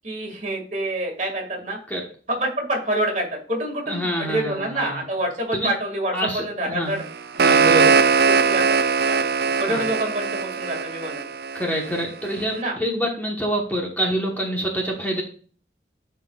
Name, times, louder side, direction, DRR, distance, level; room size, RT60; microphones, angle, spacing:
voice 1, 0.0-1.8 2.3-7.0 8.3-11.3 12.5-12.8, right 1 dB, 40° right, 1 dB, 1.9 m, -27 dB
voice 2, 3.9-5.0 5.5-5.7 6.1-7.0 7.4-8.0 9.7-9.8 11.5-15.2, right 1 dB, 10° left, -1 dB, 1.0 m, -26 dB
sound 1, 7.0-12.0, right 5 dB, 55° right, 0.4 m, -20 dB
11.0 x 4.3 x 2.3 m, 0.43 s
head